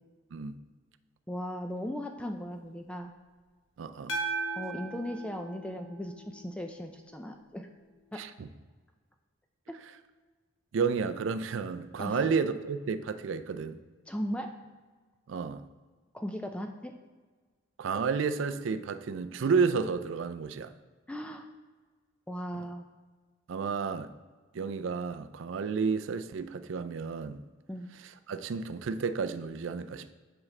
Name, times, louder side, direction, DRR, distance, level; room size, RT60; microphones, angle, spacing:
voice 1, 1.3-3.1 4.6-7.7 8.1-8.2 9.7-9.8 12.0-12.3 14.1-14.5 16.1-16.9 21.1-21.5 22.3-22.9 27.7-27.9, equal, 5° left, 0.3 m, -37 dB
voice 2, 3.8-4.1 8.2-8.5 10.7-13.8 15.3-15.6 17.8-20.7 23.5-24.1 24.5-27.4 28.3-30.1, right 5 dB, 70° right, 0.4 m, -31 dB
sound 1, 4.1-6.5, right 3 dB, 65° left, 1.2 m, -37 dB
7.3 x 5.0 x 3.2 m
head